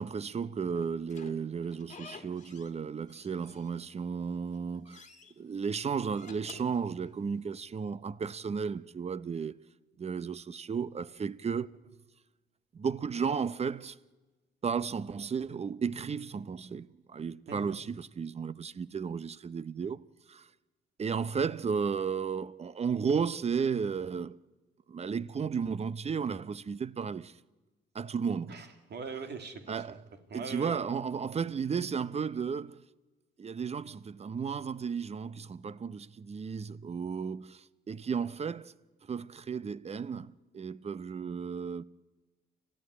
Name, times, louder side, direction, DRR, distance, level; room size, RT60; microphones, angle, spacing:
voice 1, 0.0-5.1 5.4-9.6 10.0-12.0 12.7-14.0 14.6-20.0 20.3-20.5 21.0-24.4 24.9-27.4 27.9-28.5 29.7-30.0 30.3-32.8 33.4-38.7 39.1-41.8, right 6 dB, 30° right, 0.7 m, -34 dB
Slam / Squeak, 0.7-2.8 3.1-4.1 4.4-5.3 6.0-7.5, left 5 dB, 35° left, 2.0 m, -52 dB
voice 2, 28.5-30.0 30.3-30.9, right 5 dB, 60° right, 2.6 m, -41 dB
29.5 x 14.0 x 9.7 m
cardioid pair, 90°, 20 cm